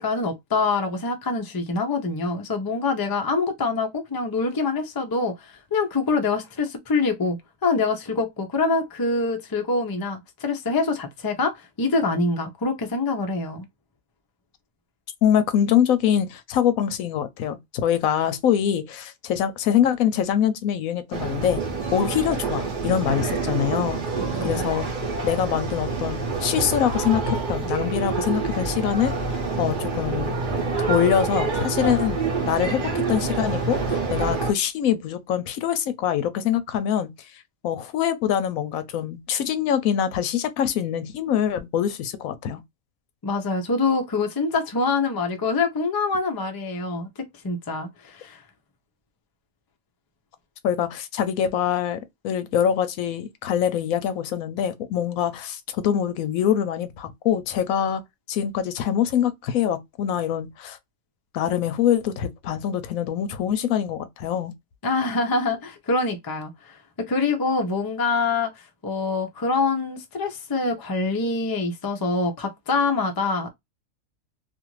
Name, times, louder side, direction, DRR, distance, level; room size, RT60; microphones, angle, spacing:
voice 1, 0.0-13.7 24.4-24.6 43.2-47.1 47.4-48.4 64.8-66.8 67.1-68.5 68.8-73.5, left 3 dB, 35° left, 0.3 m, -25 dB
voice 2, 15.2-21.6 21.9-24.0 24.4-24.8 25.2-30.3 30.9-32.2 32.5-32.8 33.1-42.6 50.6-52.0 52.2-58.0 58.3-60.8 61.3-64.5, left 9 dB, 90° left, 1.0 m, -24 dB
sound 1, 21.1-34.5, right 4 dB, 45° right, 0.8 m, -27 dB
2.5 x 2.5 x 3.0 m
omnidirectional pair, 1.4 m